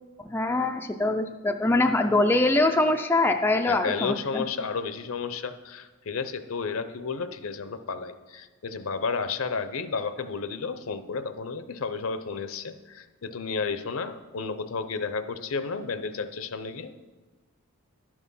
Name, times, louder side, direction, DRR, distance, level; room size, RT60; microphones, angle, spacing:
voice 1, 0.2-4.4, left 2 dB, 10° left, 5 dB, 0.3 m, -23 dB
voice 2, 3.6-16.9, left 5 dB, 65° left, 11 dB, 0.6 m, -32 dB
12.0 x 6.2 x 5.4 m, 1.3 s
head